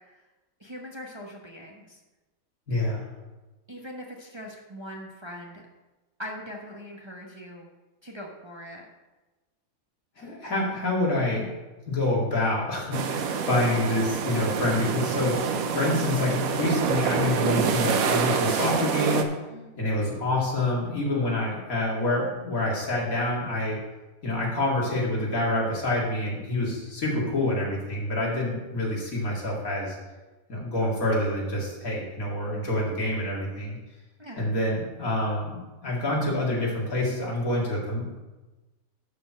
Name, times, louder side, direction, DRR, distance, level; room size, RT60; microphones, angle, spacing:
voice 1, 0.6-2.0 3.7-5.6 6.2-7.7 8.0-8.9 19.5-19.9 34.2-34.5, equal, 25° right, -1 dB, 0.9 m, -41 dB
voice 2, 2.7-3.0 10.2-11.5 11.9-19.3 19.8-23.8 24.2-30.0 30.5-33.8 34.4-38.1, left 1 dB, 80° left, -3 dB, 2.8 m, -27 dB
sound 1, 12.9-19.2, right 6 dB, 85° right, 1.2 m, -26 dB
11.5 x 4.5 x 6.1 m, 1.1 s
omnidirectional pair, 1.5 m